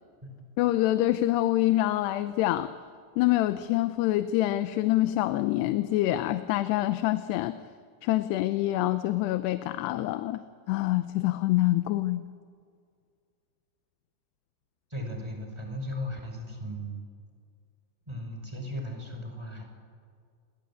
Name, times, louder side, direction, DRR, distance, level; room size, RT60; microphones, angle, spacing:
voice 1, 0.6-2.7 3.2-7.6 8.0-12.2, left 15 dB, 90° left, 11 dB, 2.9 m, -26 dB
voice 2, 14.9-17.0 18.1-19.6, equal, 5° right, 3 dB, 4.9 m, -36 dB
29.5 x 23.0 x 8.6 m, 2.2 s
omnidirectional pair, 4.7 m